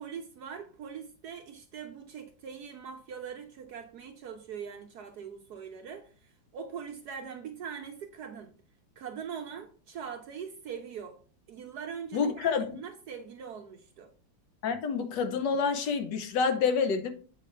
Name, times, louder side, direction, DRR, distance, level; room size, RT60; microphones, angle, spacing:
voice 1, 0.0-8.5 9.0-11.2 11.5-14.1, right 7 dB, 65° right, 1.1 m, -42 dB
voice 2, 12.1-12.8 14.6-17.1, left 5 dB, 65° left, 1.5 m, -28 dB
8.2 x 4.9 x 3.3 m
omnidirectional pair, 2.1 m